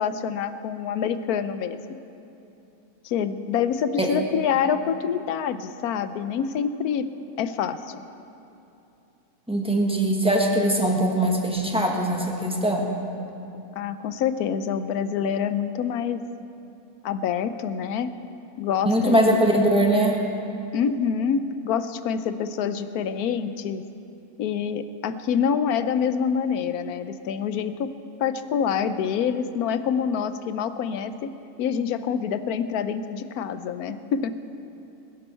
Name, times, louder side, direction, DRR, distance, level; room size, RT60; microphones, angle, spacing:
voice 1, 0.0-2.0 3.0-7.1 7.4-8.0 13.8-16.2 17.0-18.1 18.6-19.6 20.7-23.8 24.4-27.9 28.2-31.3 31.6-34.3, left 7 dB, 80° left, 11 dB, 1.1 m, -26 dB
voice 2, 9.5-12.9 18.8-20.2, right 1 dB, 5° right, -1 dB, 1.4 m, -21 dB
21.0 x 10.5 x 4.5 m, 2.8 s
omnidirectional pair, 1.6 m